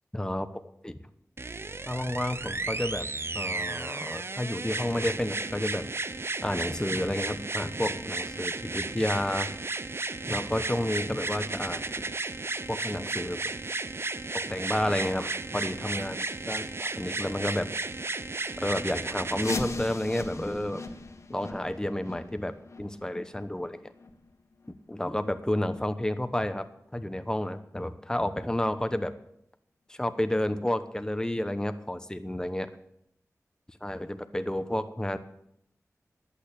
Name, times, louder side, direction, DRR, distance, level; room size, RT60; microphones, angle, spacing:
voice 1, 0.1-0.5 0.8-1.0 1.9-3.1 3.3-5.9 6.4-9.5 10.3-11.8 12.7-13.4 14.3-17.7 18.6-20.8 21.3-23.8 24.9-26.7 26.9-29.1 29.9-32.7 33.8-35.2, left 1 dB, 10° left, 10 dB, 1.0 m, -31 dB
sound 1, 1.4-19.6 20.6-20.7, right 3 dB, 45° right, 0.6 m, -34 dB
sound 2, 19.3-24.9 25.3-25.4 25.9-26.0 26.6-26.7 27.3-27.4, left 3 dB, 55° left, 1.4 m, -40 dB
11.0 x 8.5 x 8.3 m, 0.76 s
wide cardioid pair, 60°, 6 cm